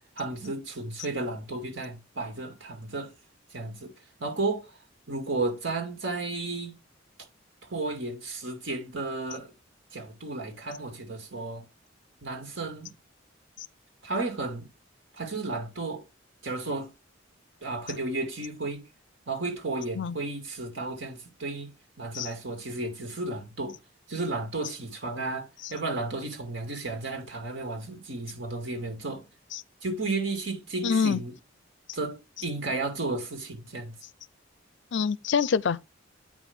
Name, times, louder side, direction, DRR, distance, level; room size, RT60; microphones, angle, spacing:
voice 1, 0.0-3.1 3.5-3.9 4.2-4.7 5.1-6.7 7.7-9.5 9.9-11.6 12.2-12.9 14.0-14.7 15.2-16.0 16.4-16.9 17.6-18.8 19.3-21.7 22.0-23.8 24.1-29.2 29.8-31.3 31.9-33.9, right 2 dB, 70° right, 2.3 m, -33 dB
voice 2, 30.8-31.2 34.9-35.8, left 6 dB, 65° left, 0.4 m, -26 dB
8.8 x 5.1 x 3.6 m
head